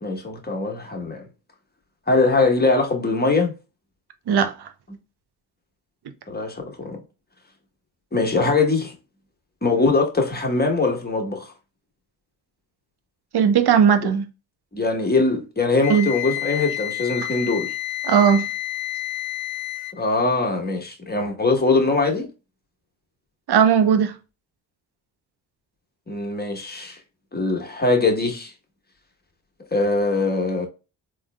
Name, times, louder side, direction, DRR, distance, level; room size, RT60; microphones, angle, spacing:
voice 1, 0.0-1.2 2.1-3.5 6.3-7.0 8.1-8.9 9.6-11.5 14.7-17.7 20.0-22.3 26.1-27.0 27.3-28.5 29.7-30.7, left 3 dB, 20° left, 1.3 m, -22 dB
voice 2, 4.3-4.7 13.3-14.3 15.9-16.1 18.0-18.5 23.5-24.2, right 7 dB, 55° right, 0.8 m, -17 dB
Wind instrument woodwind instrument, 15.8-20.0, left 14 dB, 75° left, 0.6 m, -29 dB
3.7 x 3.0 x 2.3 m
supercardioid pair, 45°, 47 cm